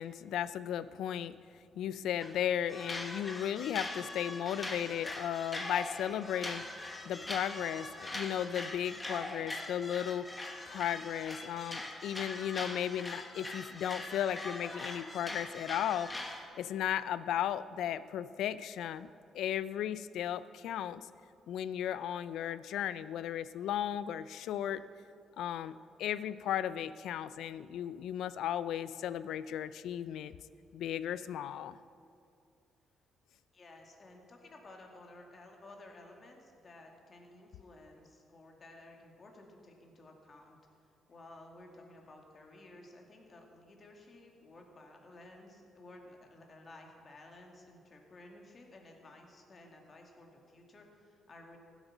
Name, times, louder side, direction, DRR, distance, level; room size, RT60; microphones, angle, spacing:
voice 1, 0.0-1.3 1.8-6.6 7.0-10.3 10.7-16.1 16.5-19.1 19.3-21.1 21.5-24.8 25.4-30.3 30.7-31.8, left 10 dB, 80° left, 15 dB, 0.4 m, -35 dB
sound 1, 2.2-2.4 2.7-16.4, left 2 dB, 20° left, 1.5 m, -42 dB
voice 2, 33.5-51.6, left 2 dB, 40° left, 1 dB, 2.2 m, -55 dB
15.5 x 8.1 x 6.0 m, 2.4 s
cardioid pair, 90°, 0 cm